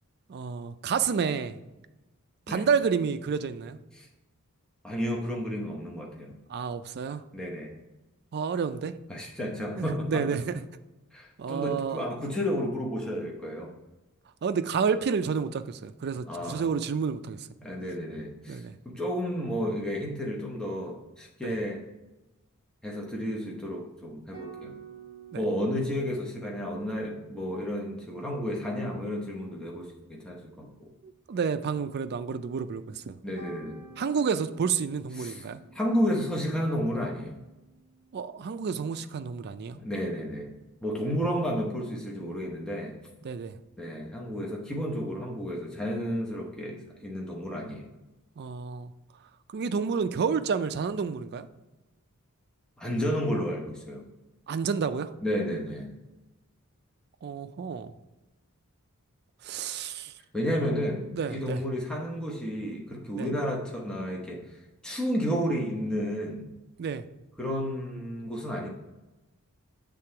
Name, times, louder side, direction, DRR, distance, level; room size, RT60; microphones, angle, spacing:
voice 1, 0.3-1.6 2.5-3.8 6.5-7.2 8.3-8.9 9.8-10.6 11.4-12.0 14.4-17.5 18.5-18.8 21.4-21.5 25.3-25.4 31.0-33.2 34.0-35.6 38.1-39.8 43.2-43.6 48.4-48.9 49.5-51.5 54.5-55.1 57.2-57.9 59.4-60.1 61.1-61.6 63.1-63.3 66.8-67.0, right 6 dB, 50° right, 10 dB, 0.4 m, -30 dB
voice 2, 4.8-6.4 7.3-7.7 9.1-10.3 11.1-13.7 16.3-16.7 17.6-21.8 22.8-24.7 25.4-30.9 33.2-33.8 35.2-35.4 35.7-37.4 39.7-40.5 40.8-42.9 43.8-47.8 52.8-54.0 55.2-55.9 60.3-64.6 64.8-66.5 67.4-68.7, equal, 5° left, -2 dB, 0.9 m, -32 dB
sound 1, 24.3-31.0 33.4-38.3, right 4 dB, 25° left, 1.6 m, -51 dB
7.6 x 3.8 x 4.4 m, 1.0 s
head